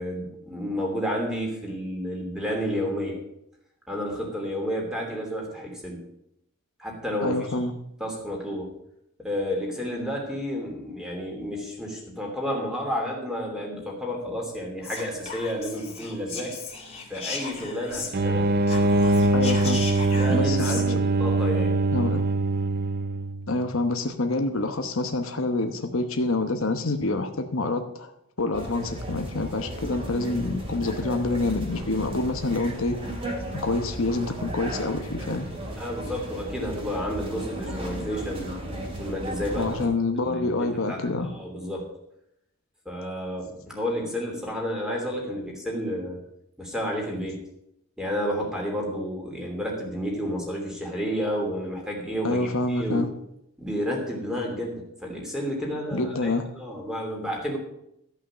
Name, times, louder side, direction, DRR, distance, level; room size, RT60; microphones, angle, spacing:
voice 1, 0.0-3.2 3.9-6.0 6.8-7.4 8.0-8.7 9.2-16.5 17.1-18.6 20.1-21.8 35.8-38.6 39.0-39.7 40.2-41.9 42.8-46.2 46.6-47.4 48.0-53.1 53.6-57.6, equal, 5° right, -1 dB, 2.9 m, -31 dB
voice 2, 7.2-7.7 19.3-19.8 20.3-20.7 21.9-22.2 23.5-28.1 28.4-33.0 33.6-35.5 39.6-41.3 52.2-53.1 55.9-56.4, left 2 dB, 70° left, 6 dB, 1.0 m, -27 dB
Whispering, 14.8-18.4 18.6-20.9, left 4 dB, 30° left, 2.1 m, -36 dB
sound 1, 18.1-23.5, right 2 dB, 45° right, 0.6 m, -23 dB
sound 2, 28.5-39.9, right 1 dB, 25° right, 2.4 m, -35 dB
13.5 x 5.8 x 7.4 m, 0.79 s
head